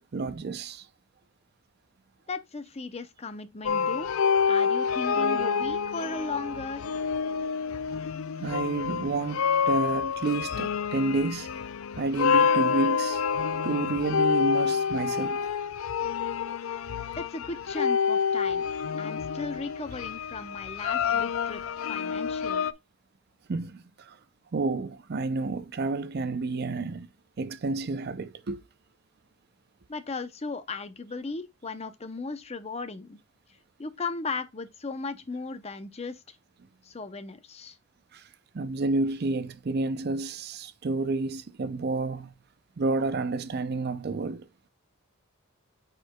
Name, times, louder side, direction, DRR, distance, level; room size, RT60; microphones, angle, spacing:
voice 1, 0.1-0.9 8.4-11.5 12.0-13.2 13.6-15.4 23.5-24.2 24.5-27.1 27.4-28.6 38.1-38.2 38.5-42.3 42.8-44.4, right 3 dB, 50° right, 0.5 m, -30 dB
voice 2, 2.3-4.1 4.5-6.9 17.2-18.7 19.0-21.6 21.9-22.7 29.9-33.2 33.8-36.4 36.8-37.8, left 3 dB, 30° left, 0.6 m, -36 dB
sound 1, 3.7-22.7, left 6 dB, 70° left, 0.4 m, -28 dB
9.3 x 4.5 x 2.2 m
head